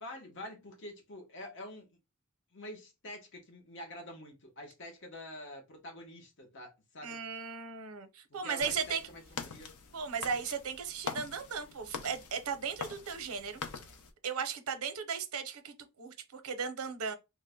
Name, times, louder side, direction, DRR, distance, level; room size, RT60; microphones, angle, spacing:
voice 1, 0.0-1.9 2.5-7.2 8.3-9.7, left 1 dB, 55° left, 0.9 m, -47 dB
voice 2, 7.0-9.0 9.9-13.6 14.2-17.1, right 6 dB, 75° right, 0.6 m, -36 dB
sound 1, 8.6-14.1, left 5 dB, 85° left, 0.6 m, -44 dB
3.1 x 2.1 x 3.5 m
head